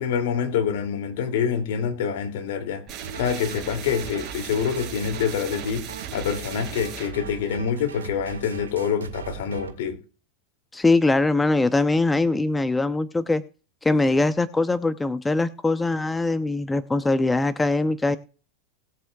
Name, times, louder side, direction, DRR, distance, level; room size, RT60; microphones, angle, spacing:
voice 1, 0.0-2.8 3.1-5.8 6.1-10.0, left 7 dB, 70° left, 2.6 m, -26 dB
sound 1, 2.9-8.5, right 6 dB, 40° right, 4.0 m, -38 dB
sound 2, 3.0-9.8, right 8 dB, 85° right, 1.9 m, -40 dB
voice 2, 10.7-13.4 13.8-18.2, left 2 dB, 10° left, 0.7 m, -22 dB
20.0 x 7.8 x 2.3 m
hypercardioid pair, 95°, 0 cm